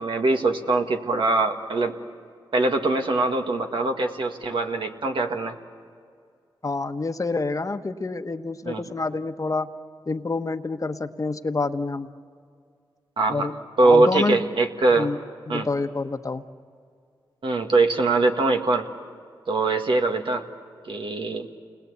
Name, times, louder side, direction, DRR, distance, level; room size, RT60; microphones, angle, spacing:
voice 1, 0.0-2.0 2.5-5.5 8.6-8.8 13.2-13.5 13.8-15.1 15.5-15.7 17.4-18.9 19.5-20.5 20.9-21.5, right 3 dB, 70° right, 4 dB, 1.9 m, -22 dB
voice 2, 6.6-9.7 10.1-12.1 13.3-13.5 13.8-14.4 15.0-15.2 15.5-16.4, left 3 dB, 40° left, 8 dB, 1.2 m, -27 dB
29.0 x 21.0 x 8.2 m, 2.2 s
cardioid pair, 55°, 9 cm